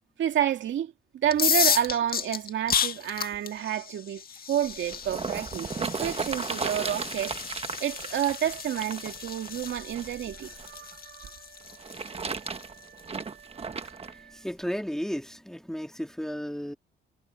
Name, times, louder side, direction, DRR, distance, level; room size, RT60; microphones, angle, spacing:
voice 1, 0.2-7.3 7.8-11.3, right 10 dB, 70° right, 2.5 m, -29 dB
sound 1, 1.2-13.0, left 7 dB, 50° left, 2.1 m, -32 dB
sound 2, 4.6-10.7 11.6-14.1 14.8-14.9, right 5 dB, 30° right, 1.4 m, -35 dB
Wind instrument woodwind instrument, 5.6-15.0, right 9 dB, 55° right, 5.9 m, -55 dB
voice 2, 13.7-16.7, equal, ahead, 2.3 m, -34 dB
cardioid pair, 90°, 20 cm